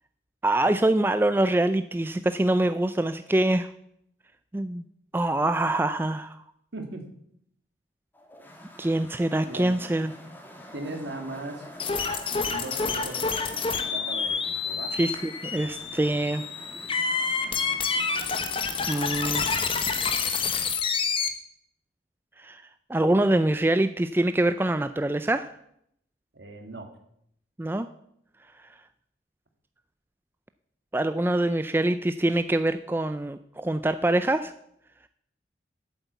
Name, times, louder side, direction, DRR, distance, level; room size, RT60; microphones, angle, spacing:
voice 1, 0.4-3.7 4.5-4.8 5.1-6.4 8.8-10.1 14.9-16.4 18.9-19.5 22.4-22.6 22.9-25.5 27.6-27.9 30.9-34.5, right 1 dB, 10° right, 11 dB, 0.3 m, -24 dB
voice 2, 6.7-7.1 9.4-9.8 10.7-11.7 12.3-14.9 26.3-26.9, right 2 dB, 65° right, 5 dB, 1.9 m, -38 dB
sound 1, 8.1-19.2, equal, 10° left, 1.4 m, -46 dB
sound 2, 11.8-21.3, left 5 dB, 30° left, 1.0 m, -28 dB
8.6 x 8.1 x 8.0 m, 0.73 s
head